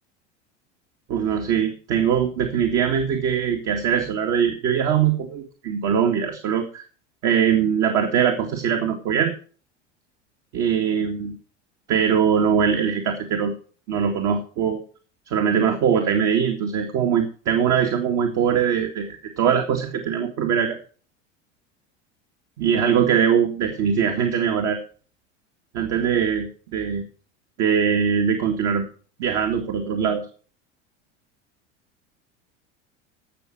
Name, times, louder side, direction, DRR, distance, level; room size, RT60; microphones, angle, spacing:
voice 1, 1.1-6.8 7.2-9.3 10.5-11.3 11.9-13.5 13.9-14.8 15.3-20.8 22.6-24.8 25.7-27.0 27.6-28.9 29.2-30.2, right 7 dB, 50° right, 4 dB, 2.1 m, -22 dB
16.0 x 6.0 x 7.7 m, 0.42 s
hypercardioid pair, 80°, 37 cm